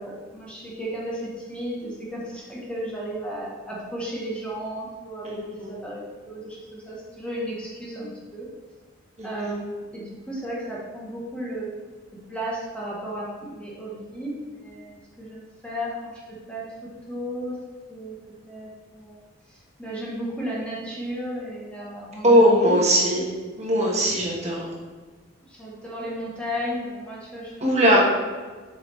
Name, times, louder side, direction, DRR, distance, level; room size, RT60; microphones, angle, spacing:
voice 1, 0.0-8.5 9.2-11.8 12.3-17.6 17.9-18.1 18.5-19.2 19.5-22.7 25.5-27.7, equal, 5° left, -5 dB, 1.0 m, -34 dB
voice 2, 5.2-5.8 9.2-9.6 22.2-23.3 23.6-24.7 27.6-28.0, equal, 35° right, -3 dB, 1.4 m, -20 dB
7.0 x 4.9 x 3.3 m, 1.4 s
head